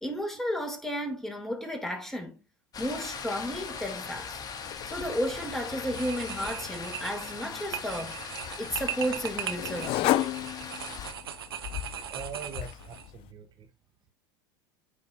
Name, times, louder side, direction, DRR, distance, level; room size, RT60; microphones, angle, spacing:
voice 1, 0.0-2.4 2.8-4.4 4.8-8.2 8.6-10.3, equal, 5° left, 2.8 m, -33 dB
sound 1, 2.7-11.1, left 6 dB, 30° left, 2.1 m, -40 dB
sound 2, 4.7-13.3, left 16 dB, 50° left, 0.4 m, -35 dB
sound 3, 5.1-5.5 5.8-13.1, right 9 dB, 85° right, 1.0 m, -39 dB
voice 2, 12.1-13.7, right 6 dB, 40° right, 1.2 m, -42 dB
9.4 x 5.2 x 2.7 m
hypercardioid pair, 85°, 12 cm